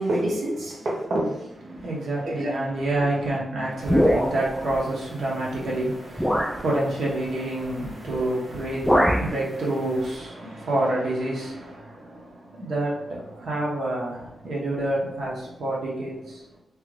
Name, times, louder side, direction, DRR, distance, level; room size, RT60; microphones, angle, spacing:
voice 1, 0.0-1.8 2.2-2.5, right 1 dB, 65° right, 0.7 m, -27 dB
voice 2, 1.7-16.5, right 1 dB, 80° right, 1.0 m, -28 dB
sound 1, 3.9-4.6 5.5-5.6 6.2-6.6 8.0-8.3 8.5-9.4, equal, ahead, 0.3 m, -22 dB
3.2 x 2.4 x 3.2 m
wide cardioid pair, 135°, 0 cm